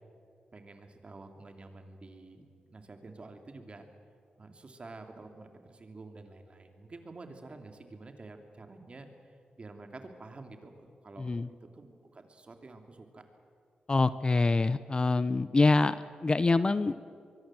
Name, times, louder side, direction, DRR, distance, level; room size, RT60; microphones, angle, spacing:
voice 1, 0.5-3.9 4.4-11.3 11.6-13.2, right 3 dB, 40° right, 5 dB, 2.9 m, -49 dB
voice 2, 11.2-11.5 13.9-16.0 16.2-17.0, left 3 dB, 30° left, 14 dB, 0.7 m, -25 dB
23.5 x 22.5 x 7.7 m, 2.2 s
cardioid pair, 75°, 3 cm